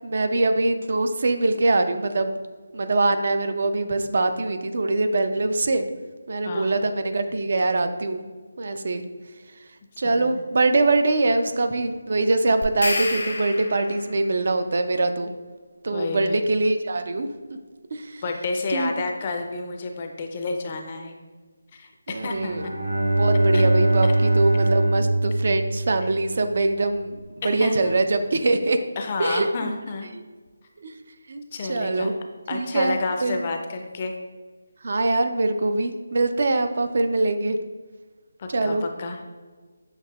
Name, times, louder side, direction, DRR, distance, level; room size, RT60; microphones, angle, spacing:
voice 1, 0.0-2.3 2.7-5.8 6.3-8.2 8.6-9.0 10.0-15.3 15.8-17.3 17.9-18.2 18.7-18.9 22.1-22.7 23.2-27.2 27.4-28.8 29.2-29.5 30.1-30.2 30.8-30.9 31.3-31.4 31.7-32.1 32.5-33.4 34.8-37.6 38.5-38.8, right 2 dB, 55° right, 8 dB, 0.3 m, -23 dB
voice 2, 10.0-10.4 15.9-16.4 18.2-21.1 21.7-22.7 23.5-23.6 27.4-27.9 29.0-30.1 31.5-32.1 32.5-34.1 38.4-39.2, left 3 dB, 35° left, 4 dB, 0.4 m, -30 dB
sound 1, 12.6-14.2, left 2 dB, 75° left, 0.8 m, -29 dB
Bowed string instrument, 22.3-26.4, right 1 dB, 75° right, 0.8 m, -22 dB
6.6 x 2.7 x 2.2 m, 1.4 s
figure-of-eight pair, 165°, 0 cm